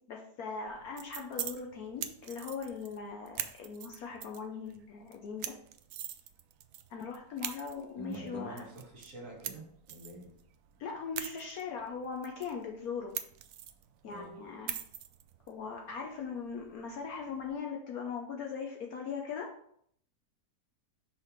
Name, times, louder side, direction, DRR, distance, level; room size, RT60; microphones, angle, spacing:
voice 1, 0.1-5.5 6.9-8.6 10.8-13.1 14.0-14.7 15.5-19.5, left 5 dB, 70° left, 1 dB, 1.1 m, -40 dB
sound 1, 0.7-17.6, right 10 dB, 70° right, 0.8 m, -45 dB
voice 2, 8.0-10.3 14.1-14.3, right 2 dB, 55° right, -1 dB, 1.8 m, -45 dB
5.7 x 3.3 x 5.7 m, 0.68 s
omnidirectional pair, 1.8 m